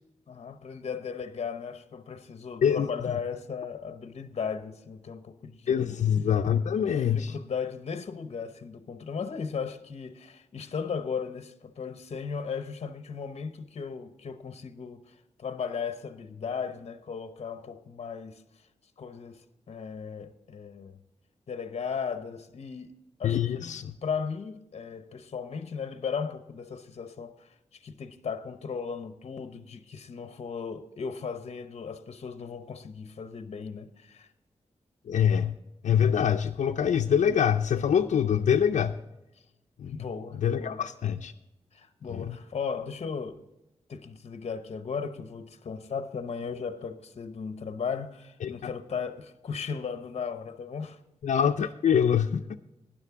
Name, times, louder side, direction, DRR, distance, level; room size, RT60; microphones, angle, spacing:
voice 1, 0.3-5.9 6.9-18.4 19.0-21.0 21.5-22.9 23.2-34.3 39.9-40.8 41.7-43.4 43.9-51.0, left 6 dB, 60° left, 0.8 m, -36 dB
voice 2, 2.6-3.1 5.7-7.3 23.2-23.9 35.1-35.6 35.8-39.0 39.8-39.9 40.4-41.3 42.1-42.4 48.4-48.5 51.2-52.6, left 8 dB, 80° left, 0.4 m, -25 dB
12.5 x 10.0 x 3.6 m
wide cardioid pair, 145°, 12 cm